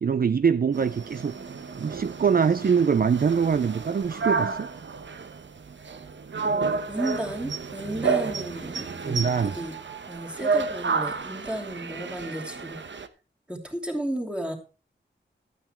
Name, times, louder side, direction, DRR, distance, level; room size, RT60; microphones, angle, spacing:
voice 1, 0.0-1.3 1.8-4.7 9.0-9.6, right 6 dB, 50° right, 0.5 m, -23 dB
sound 1, 0.7-13.1, right 4 dB, 70° right, 1.0 m, -31 dB
voice 2, 6.4-9.8 10.1-12.8 13.5-14.5, right 1 dB, 5° right, 2.9 m, -33 dB
12.5 x 9.0 x 4.4 m
wide cardioid pair, 100°, 20 cm